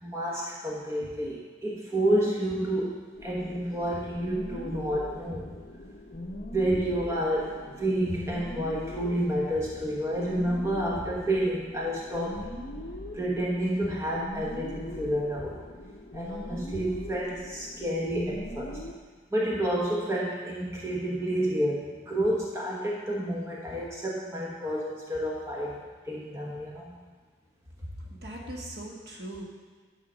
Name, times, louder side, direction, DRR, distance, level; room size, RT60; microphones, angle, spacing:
voice 1, 0.0-5.5 6.5-12.4 13.1-15.6 16.1-18.8 19.3-25.8 26.1-27.0, right 1 dB, 15° right, -4 dB, 1.1 m, -29 dB
sound 1, 3.1-18.9, left 1 dB, 50° left, 1.0 m, -41 dB
voice 2, 28.1-29.4, right 1 dB, 65° right, -2 dB, 1.6 m, -39 dB
10.0 x 4.9 x 6.2 m, 1.5 s
head